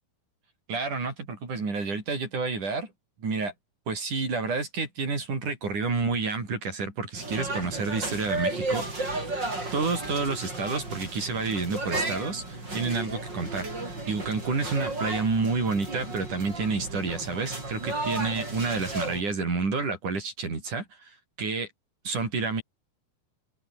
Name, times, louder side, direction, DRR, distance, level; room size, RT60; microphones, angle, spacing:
voice 1, 0.7-2.9 3.2-3.5 3.9-9.3 9.7-21.7 22.0-22.6, right 4 dB, 50° right, 7.4 m, -29 dB
sound 1, 7.1-19.2, right 2 dB, 25° right, 7.9 m, -33 dB
open air
omnidirectional pair, 4.5 m